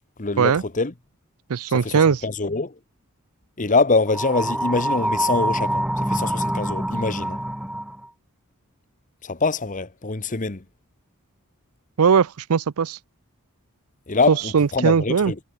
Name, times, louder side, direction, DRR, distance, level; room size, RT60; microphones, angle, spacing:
voice 1, 0.2-0.9 1.7-2.8 3.6-7.4 9.2-10.6 14.1-15.4, left 3 dB, 35° left, 1.1 m, -24 dB
voice 2, 1.5-2.2 12.0-13.0 14.3-15.3, right 6 dB, 85° right, 0.5 m, -19 dB
sound 1, 4.1-8.1, right 1 dB, 5° right, 0.8 m, -25 dB
head